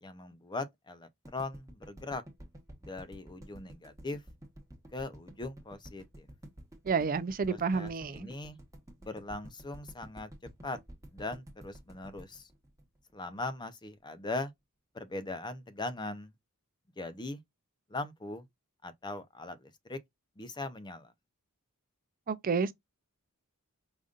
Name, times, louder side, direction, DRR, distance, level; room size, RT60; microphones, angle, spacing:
voice 1, 0.0-2.2 2.8-4.2 4.9-6.3 7.5-8.6 9.0-10.3 10.6-10.8 11.1-12.5 13.1-14.5 14.9-16.3 17.0-17.4 17.9-18.4 18.8-20.0 20.4-21.1, left 2 dB, 20° left, 0.6 m, -40 dB
sound 1, 1.3-13.4, right 1 dB, 15° right, 1.2 m, -50 dB
voice 2, 6.9-8.3 22.3-22.7, right 5 dB, 40° right, 0.4 m, -30 dB
5.1 x 2.5 x 2.4 m
head